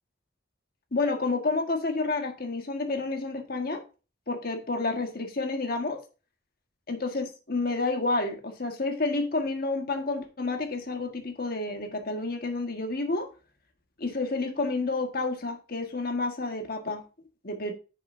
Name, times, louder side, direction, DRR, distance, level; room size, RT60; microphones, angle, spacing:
voice 1, 0.9-3.8 4.3-6.0 6.9-13.3 14.0-17.7, left 3 dB, 55° left, 1.5 m, -30 dB
9.5 x 6.8 x 2.6 m
head